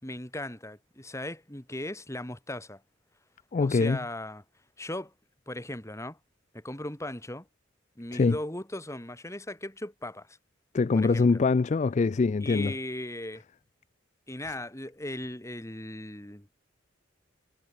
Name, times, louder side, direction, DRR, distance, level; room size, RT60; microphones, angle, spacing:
voice 1, 0.0-2.8 3.6-4.4 4.8-5.1 5.5-6.2 6.5-7.5 8.0-10.4 10.9-11.4 12.4-13.4 14.3-16.5, left 1 dB, 15° left, 3.6 m, -38 dB
voice 2, 3.5-4.0 8.1-8.4 10.7-12.7, left 4 dB, 35° left, 0.4 m, -23 dB
head